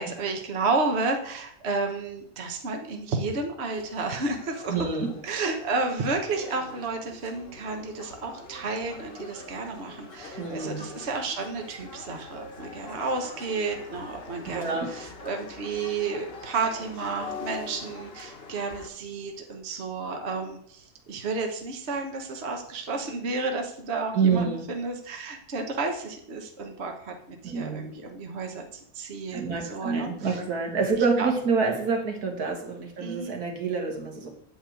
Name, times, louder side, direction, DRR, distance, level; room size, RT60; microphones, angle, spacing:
voice 1, 0.0-4.7 5.2-30.4 31.0-31.3 33.0-33.3, right 3 dB, 45° right, 4 dB, 1.3 m, -31 dB
sound 1, 3.8-18.9, left 4 dB, 40° left, 1.3 m, -43 dB
voice 2, 4.7-5.1 10.4-10.8 14.5-14.9 24.1-24.7 27.4-27.9 29.3-34.3, right 5 dB, 75° right, 2 dB, 2.2 m, -27 dB
8.8 x 5.1 x 7.7 m, 0.65 s
omnidirectional pair, 1.6 m